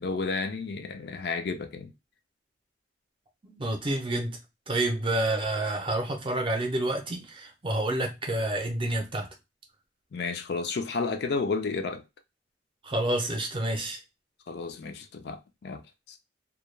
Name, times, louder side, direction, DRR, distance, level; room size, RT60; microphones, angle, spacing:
voice 1, 0.0-1.9 10.1-12.0 14.5-15.8 16.1-16.2, left 4 dB, 60° left, 0.4 m, -32 dB
voice 2, 3.4-4.4 4.7-9.3 12.8-14.0, right 1 dB, 30° right, 0.6 m, -29 dB
2.2 x 2.2 x 3.1 m
head